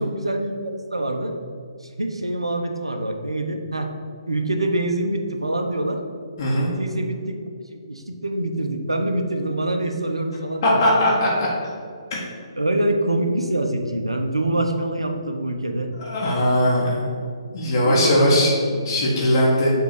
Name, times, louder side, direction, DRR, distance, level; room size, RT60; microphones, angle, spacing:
voice 1, 0.0-1.4 1.8-3.9 4.3-6.0 6.5-10.8 12.6-15.9 17.8-18.8, right 1 dB, 90° right, 4 dB, 0.9 m, -25 dB
voice 2, 6.4-6.7 10.6-11.5 12.1-12.2 16.0-17.1 17.5-18.5 18.9-19.7, left 1 dB, 50° left, -5 dB, 1.7 m, -19 dB
7.2 x 3.7 x 5.8 m, 2.1 s
figure-of-eight pair, 135°, 3 cm